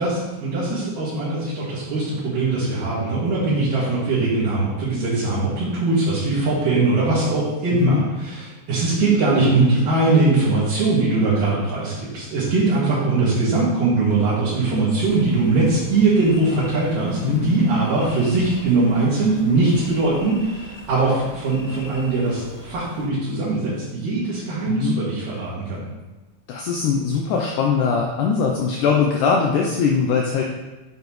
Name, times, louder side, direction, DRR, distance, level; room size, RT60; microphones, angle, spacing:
voice 1, 0.0-25.8, right 3 dB, 65° right, -11 dB, 3.3 m, -21 dB
sound 1, 14.9-23.1, equal, 50° left, 3.0 m, -40 dB
voice 2, 26.5-30.4, left 6 dB, 75° left, 0 dB, 2.0 m, -21 dB
7.8 x 7.1 x 3.1 m, 1.1 s
omnidirectional pair, 4.1 m